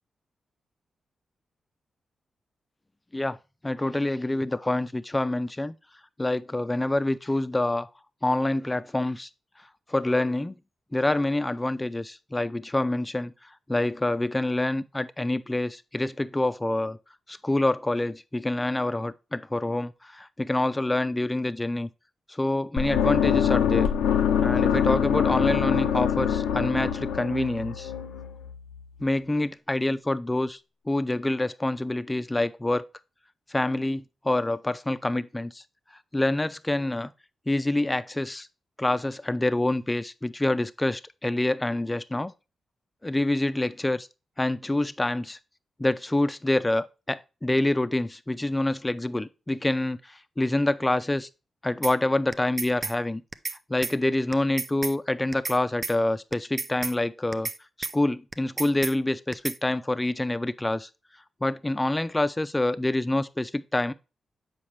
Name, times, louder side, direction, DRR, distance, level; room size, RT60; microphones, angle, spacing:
voice 1, 3.6-5.7 6.2-7.9 8.2-9.3 9.9-10.6 10.9-13.3 13.7-17.0 17.3-21.9 22.3-23.9 24.4-27.9 29.0-30.6 30.9-32.8 33.5-35.6 36.1-37.1 37.5-38.5 38.8-42.3 43.0-44.1 44.4-45.4 45.8-51.3 51.6-53.2 53.7-57.5 57.8-60.9 61.4-63.9, left 1 dB, 20° left, 0.6 m, -26 dB
sound 1, 22.8-28.8, left 8 dB, 90° left, 0.6 m, -24 dB
sound 2, 51.8-51.9 52.3-52.9 53.3-53.6 53.8-53.9 54.3-54.9 55.3-55.6 55.8-55.9 56.3-56.9 57.3-57.6 57.8-57.9 58.3-58.9 59.3-59.6, right 4 dB, 45° right, 0.5 m, -32 dB
7.2 x 5.1 x 3.2 m
supercardioid pair, 45°, 0 cm